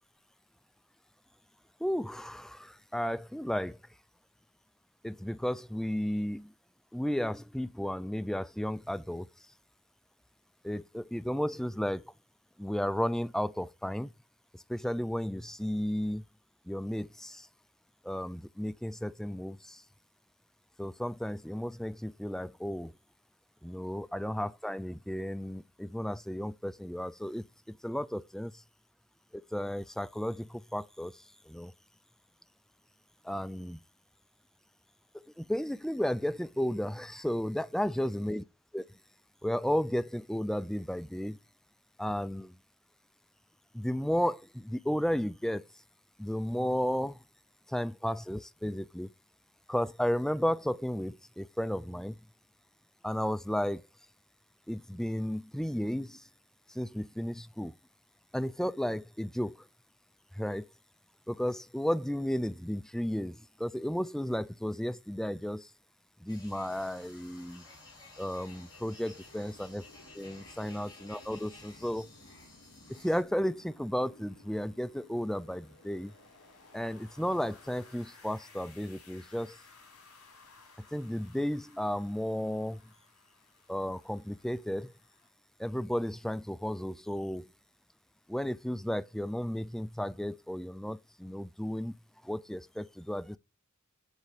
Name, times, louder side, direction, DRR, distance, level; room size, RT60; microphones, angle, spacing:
voice 1, 1.8-3.8 5.0-6.5 6.9-9.3 10.6-12.1 12.6-14.1 14.5-16.2 16.7-17.5 18.0-19.8 20.8-22.9 23.6-28.6 29.3-31.7 33.2-33.8 35.4-38.4 38.7-38.9 39.4-41.4 42.0-42.5 43.7-45.7 46.2-47.2 47.7-49.1 49.7-52.2 53.0-53.8 54.7-56.3 56.7-57.7 58.3-59.7 60.3-60.7 61.3-65.7 66.2-67.6 68.2-69.8 70.1-72.1 72.9-76.1 76.7-79.6 80.9-82.8 83.7-84.9 85.6-87.5 88.3-93.4, equal, ahead, 0.4 m, -33 dB
sound 1, 66.3-73.2, left 2 dB, 20° left, 3.7 m, -54 dB
sound 2, 66.7-85.3, left 3 dB, 75° left, 4.3 m, -58 dB
8.1 x 7.3 x 4.9 m
head